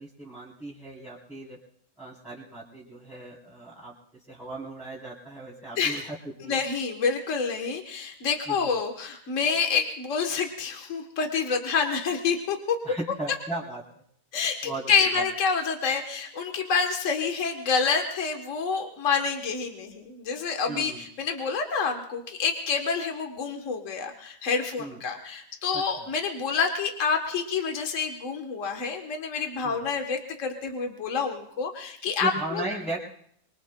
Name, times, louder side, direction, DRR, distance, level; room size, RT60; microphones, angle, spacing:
voice 1, 0.0-1.6 2.0-3.9 4.3-6.2 6.4-6.6 8.5-8.7 12.8-13.8 14.6-15.2 20.7-21.1 24.8-25.0 25.7-26.0 29.6-29.8 32.2-33.1, right 2 dB, ahead, -10 dB, 3.3 m, -37 dB
voice 2, 5.8-6.1 6.5-12.8 14.3-32.6, left 5 dB, 60° left, 4 dB, 1.5 m, -28 dB
24.0 x 24.0 x 2.2 m, 0.65 s
omnidirectional pair, 1.5 m